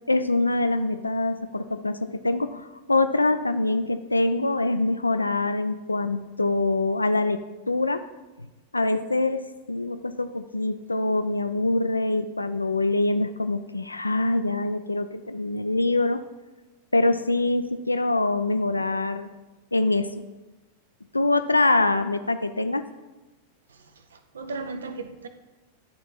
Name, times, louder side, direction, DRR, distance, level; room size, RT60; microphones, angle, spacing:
voice 1, 0.1-8.0 8.7-16.2 16.9-19.3 19.7-20.2 21.1-22.8, left 2 dB, 80° left, 10 dB, 0.3 m, -24 dB
voice 2, 24.1-25.3, right 3 dB, 70° right, 9 dB, 0.6 m, -36 dB
10.5 x 3.6 x 4.4 m, 1.1 s
figure-of-eight pair, 90°, 0 cm